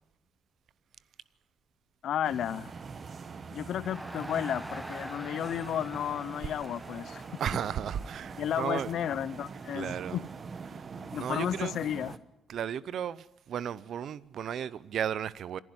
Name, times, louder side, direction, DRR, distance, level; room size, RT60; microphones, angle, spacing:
voice 1, 2.0-2.7 3.5-7.2 7.5-7.6 8.4-10.2 11.1-12.1, left 10 dB, 70° left, 0.6 m, -33 dB
sound 1, 2.2-12.2, right 5 dB, 45° right, 1.1 m, -44 dB
Crowd, 3.8-9.0, equal, 5° right, 1.2 m, -45 dB
voice 2, 7.4-9.0 9.7-10.2 10.7-10.8 11.1-11.7 12.5-15.6, right 9 dB, 65° right, 0.7 m, -34 dB
27.0 x 11.0 x 9.7 m
cardioid pair, 90°, 0 cm